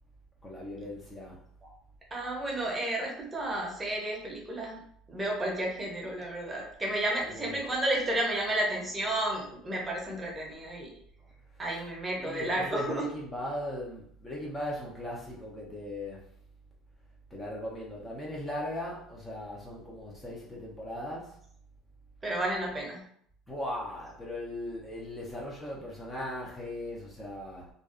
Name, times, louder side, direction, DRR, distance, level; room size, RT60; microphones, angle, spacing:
voice 1, 0.4-1.4 7.2-7.6 11.5-11.6 12.2-16.2 17.3-21.4 23.5-27.7, left 1 dB, 15° left, -4 dB, 0.6 m, -38 dB
voice 2, 2.1-4.8 5.1-10.9 11.6-13.0 22.2-23.0, right 1 dB, 20° right, -2 dB, 0.8 m, -32 dB
2.6 x 2.3 x 2.4 m, 0.65 s
supercardioid pair, 100°, 0 cm